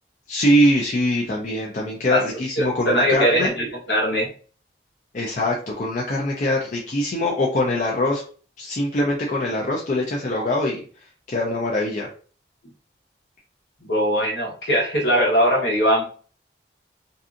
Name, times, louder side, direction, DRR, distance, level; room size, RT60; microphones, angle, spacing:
voice 1, 0.3-3.5 5.1-8.2 8.6-10.8 11.3-12.1, left 1 dB, 45° left, -2 dB, 0.4 m, -23 dB
voice 2, 2.6-4.3 10.4-10.5 13.8-16.0, equal, 70° left, -2 dB, 1.1 m, -21 dB
2.6 x 2.5 x 2.4 m, 0.41 s
head